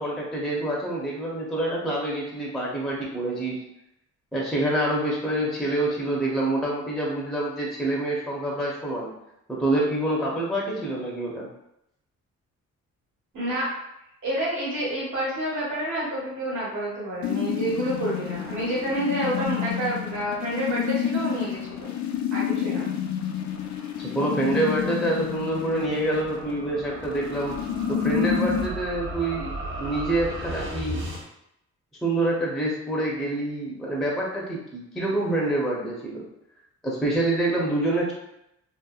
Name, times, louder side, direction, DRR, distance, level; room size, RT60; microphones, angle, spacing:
voice 1, 0.0-3.6 4.3-9.1 9.5-11.5 24.0-27.6 27.9-29.5 29.8-31.0 32.0-36.2 36.8-38.1, right 1 dB, ahead, -4 dB, 0.6 m, -26 dB
voice 2, 13.3-13.7 14.2-21.9 22.3-22.9, right 1 dB, 75° right, -7 dB, 1.3 m, -28 dB
sound 1, 17.2-28.7, left 8 dB, 65° left, 0.5 m, -29 dB
sound 2, 23.4-31.2, right 1 dB, 40° right, 0.7 m, -37 dB
2.8 x 2.0 x 2.3 m, 0.83 s
cardioid pair, 90°, 30 cm